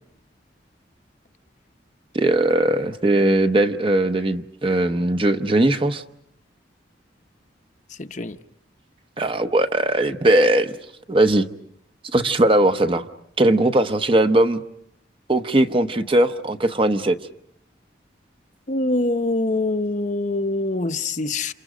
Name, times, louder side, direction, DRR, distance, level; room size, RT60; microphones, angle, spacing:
voice 1, 2.1-6.0 9.2-10.8 11.1-11.5 12.1-13.1 13.4-14.6 15.3-17.1, right 1 dB, 30° right, 0.9 m, -19 dB
voice 2, 8.0-8.4 18.7-21.5, left 2 dB, 40° left, 0.9 m, -24 dB
30.0 x 28.0 x 5.1 m
head